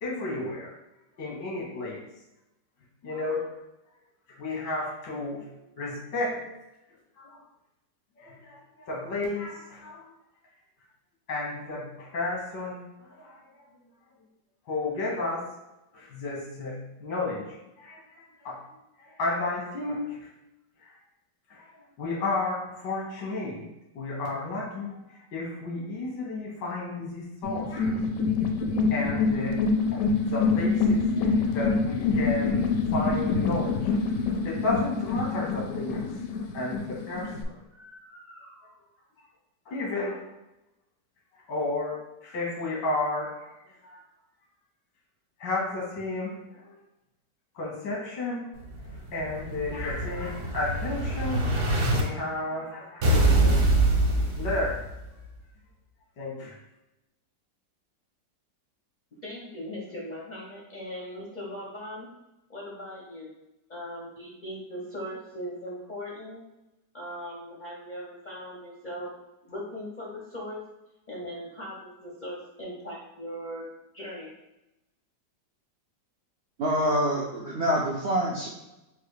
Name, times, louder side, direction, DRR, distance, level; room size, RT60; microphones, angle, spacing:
voice 1, 0.0-0.8 1.2-2.0 3.0-3.5 4.4-6.6 7.2-7.4 8.2-10.1 11.3-13.5 14.7-15.6 15.9-18.6 19.0-20.3 20.8-20.9 21.5-23.7 24.0-28.2 28.9-34.0 34.4-36.2 36.5-38.7 39.7-40.3 41.5-44.0 45.4-46.7 47.6-48.5 49.1-51.5 51.9-53.7 54.4-54.9 56.2-56.6, left 2 dB, 90° left, -3 dB, 1.7 m, -33 dB
sound 1, 27.4-37.4, left 4 dB, 75° left, 0.8 m, -26 dB
Explosion, 48.7-52.0 53.0-55.0, right 2 dB, 60° right, 1.1 m, -24 dB
voice 2, 59.2-62.1 62.5-63.3 63.7-66.4 66.9-69.2 69.4-70.6 71.1-73.6 73.9-74.3, equal, 55° left, -4 dB, 0.5 m, -39 dB
voice 3, 76.6-78.5, equal, 75° right, -4 dB, 0.6 m, -26 dB
3.9 x 2.4 x 4.7 m, 0.94 s
omnidirectional pair, 1.9 m